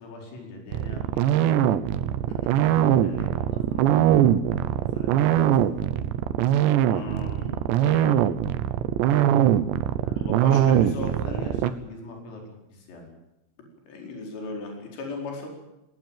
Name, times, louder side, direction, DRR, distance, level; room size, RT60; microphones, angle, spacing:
voice 1, 0.0-1.6 2.5-5.9 9.9-10.3 10.6-12.4 12.7-13.1, left 2 dB, 85° left, 1 dB, 7.7 m, -43 dB
sound 1, 0.7-11.7, right 11 dB, 75° right, 2.8 m, -21 dB
voice 2, 6.9-8.2 10.1-11.5 13.9-15.5, left 3 dB, 60° left, 1 dB, 6.7 m, -36 dB
20.5 x 19.5 x 9.1 m, 0.93 s
omnidirectional pair, 5.9 m